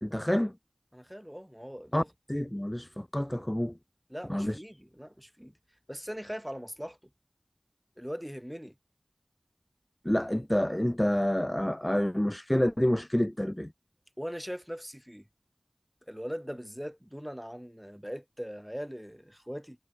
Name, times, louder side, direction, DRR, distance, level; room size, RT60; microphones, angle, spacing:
voice 1, 0.0-0.5 1.9-2.0 2.3-3.8 4.3-4.6 10.0-13.7, left 1 dB, 20° left, 0.8 m, -28 dB
voice 2, 0.9-2.1 4.1-5.5 5.9-7.0 8.0-8.7 14.2-15.3 16.1-19.8, equal, 5° right, 6.2 m, -40 dB
wide cardioid pair, 40°, 0 cm